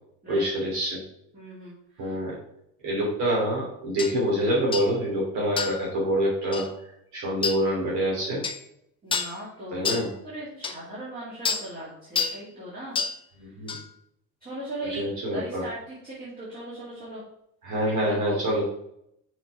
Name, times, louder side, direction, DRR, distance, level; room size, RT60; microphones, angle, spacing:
voice 1, 0.3-1.0 2.0-2.4 2.8-6.7 7.1-8.4 9.7-10.1 13.4-13.7 14.9-15.6 17.6-18.6, equal, 50° right, -4 dB, 3.1 m, -26 dB
voice 2, 1.3-2.2 9.0-9.9 10.2-13.0 13.4-13.5 14.4-15.0 15.3-17.2 17.8-18.4, right 1 dB, 25° right, -8 dB, 2.4 m, -38 dB
sound 1, 4.0-4.1 4.7-4.9 5.6-5.9 6.5-6.7 7.4-7.6 8.4-8.6 9.1-9.4 9.9-10.1 10.6-10.8 11.5-11.7 12.2-12.4 13.0-13.2 13.7-13.8, left 5 dB, 15° left, 0.4 m, -28 dB
6.4 x 4.6 x 4.7 m, 0.75 s
cardioid pair, 155°, 37 cm